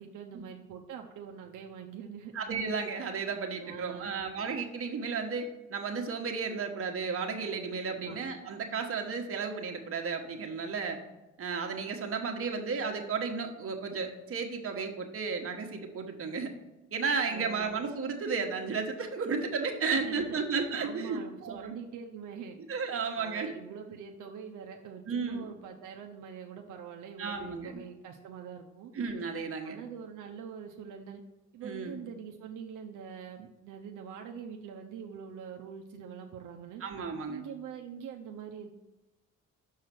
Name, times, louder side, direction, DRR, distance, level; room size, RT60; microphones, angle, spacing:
voice 1, 0.0-2.3 3.6-4.1 7.9-8.2 17.3-17.7 19.9-20.4 20.7-22.6 23.2-28.9 29.6-31.2 31.5-36.8 37.3-38.7, right 7 dB, 80° right, 2 dB, 0.7 m, -44 dB
voice 2, 2.3-11.0 11.4-16.5 16.9-21.7 22.7-23.5 25.1-25.4 27.2-27.8 28.9-29.8 31.6-32.0 36.8-37.4, right 5 dB, 45° right, 3 dB, 1.2 m, -33 dB
6.6 x 4.8 x 6.0 m, 1.0 s
cardioid pair, 90°, 30 cm